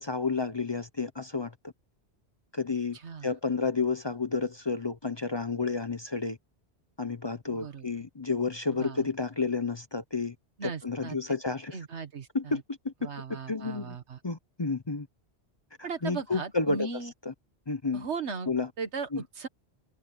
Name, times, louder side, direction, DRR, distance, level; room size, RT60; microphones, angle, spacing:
voice 1, 0.0-1.7 2.5-6.4 7.0-10.3 10.6-11.8 12.3-14.0 14.2-15.1 15.8-16.9 17.2-17.3 17.7-18.0 18.5-18.7 19.1-19.2, left 4 dB, 30° left, 0.7 m, -31 dB
voice 2, 3.0-3.3 7.5-7.9 8.7-9.0 10.6-11.1 11.7-12.6 13.0-14.2 15.8-17.1 17.9-18.5 18.8-19.5, right 5 dB, 90° right, 1.8 m, -37 dB
omnidirectional pair, 1.1 m